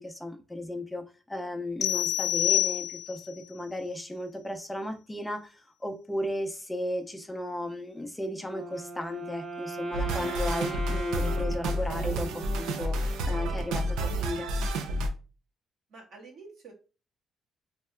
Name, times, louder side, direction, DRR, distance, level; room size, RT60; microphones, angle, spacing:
voice 1, 0.0-14.5, left 1 dB, 10° left, 0.6 m, -35 dB
sound 1, 1.8-3.3, left 13 dB, 80° left, 0.3 m, -27 dB
Wind instrument woodwind instrument, 8.5-12.7, right 2 dB, 50° right, 1.5 m, -38 dB
sound 2, 9.9-15.1, right 1 dB, 90° right, 0.4 m, -30 dB
voice 2, 15.9-16.7, right 4 dB, 65° right, 1.4 m, -48 dB
3.2 x 2.7 x 2.2 m
cardioid pair, 90°, 0 cm